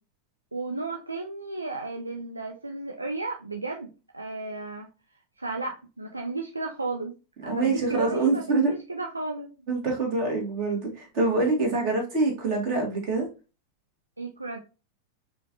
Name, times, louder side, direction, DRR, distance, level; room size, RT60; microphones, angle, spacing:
voice 1, 0.5-4.9 5.4-7.1 7.4-9.5 11.6-11.7 14.2-14.6, right 3 dB, 80° right, 2 dB, 0.4 m, -33 dB
voice 2, 7.5-8.8 9.7-13.3, right 3 dB, 40° right, 0 dB, 1.7 m, -25 dB
5.0 x 2.5 x 2.9 m, 0.31 s
figure-of-eight pair, 90°, 0 cm